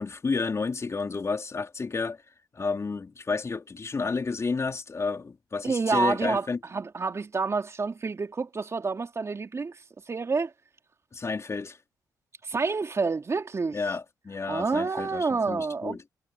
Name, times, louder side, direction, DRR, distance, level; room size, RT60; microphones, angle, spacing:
voice 1, 0.0-2.2 2.5-6.6 11.1-11.8 13.7-16.0, left 4 dB, 40° left, 3.9 m, -31 dB
voice 2, 5.6-6.5 6.7-9.8 10.1-10.5 12.4-13.8 14.5-16.0, right 4 dB, 40° right, 2.9 m, -28 dB
supercardioid pair, 65°, 8 cm